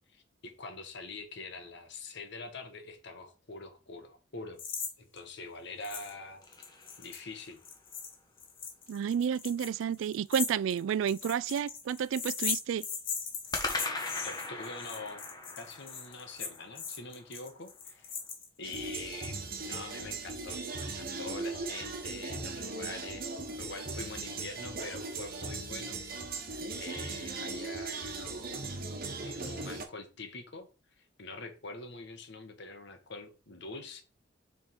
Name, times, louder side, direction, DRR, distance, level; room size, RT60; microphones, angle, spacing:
voice 1, 0.1-4.6 5.0-6.4 7.0-7.6 14.2-15.2 15.6-18.1 18.6-23.3 23.5-26.0 26.7-28.6 29.2-30.7 31.0-34.0, left 3 dB, 65° left, 1.2 m, -45 dB
sound 1, 4.6-4.9 5.2-5.3 5.8-6.1 6.4-18.8, left 6 dB, 50° left, 1.4 m, -39 dB
sound 2, 5.8-7.7 13.5-17.8, left 2 dB, 20° left, 1.2 m, -40 dB
voice 2, 8.9-12.9, right 8 dB, 85° right, 0.3 m, -31 dB
sound 3, 18.6-29.8, right 3 dB, 50° right, 1.2 m, -38 dB
6.4 x 3.6 x 4.4 m
head